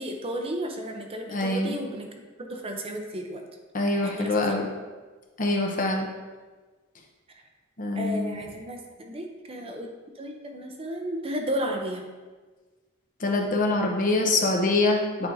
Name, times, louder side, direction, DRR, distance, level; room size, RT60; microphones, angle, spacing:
voice 1, 0.0-3.4 4.0-4.6 7.9-9.9 10.2-12.1, right 1 dB, 30° right, 3 dB, 0.6 m, -33 dB
voice 2, 1.3-1.8 3.7-4.6 5.4-6.1 7.8-8.4 13.2-15.3, left 2 dB, 40° left, 1 dB, 0.8 m, -24 dB
8.8 x 4.5 x 2.6 m, 1.3 s
head